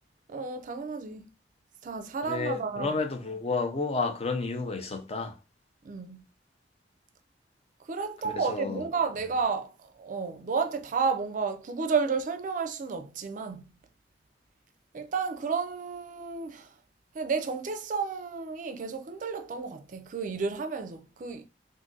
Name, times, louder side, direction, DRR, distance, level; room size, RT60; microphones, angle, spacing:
voice 1, 0.3-1.3 1.8-3.0 5.8-6.2 7.9-13.6 14.9-16.7 17.2-21.5, right 5 dB, 45° right, 0.4 m, -32 dB
voice 2, 2.2-5.4 8.2-8.8, left 3 dB, 35° left, 0.6 m, -31 dB
2.5 x 2.5 x 3.8 m
head